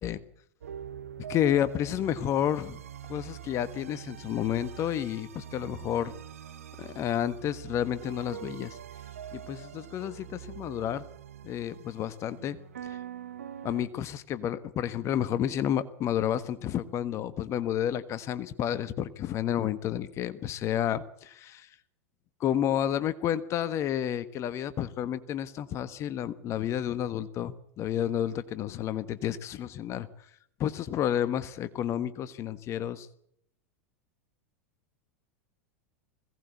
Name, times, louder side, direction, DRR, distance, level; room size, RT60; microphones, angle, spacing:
sound 1, 0.6-13.9, right 10 dB, 80° right, 1.5 m, -44 dB
voice 1, 1.3-2.8 3.1-6.1 6.8-8.8 9.3-11.0 11.4-12.6 12.8-13.0 13.6-21.7 22.4-30.1 30.6-33.1, left 10 dB, 40° left, 14 dB, 1.4 m, -30 dB
21.5 x 17.5 x 8.3 m, 0.70 s
hypercardioid pair, 95°, 7 cm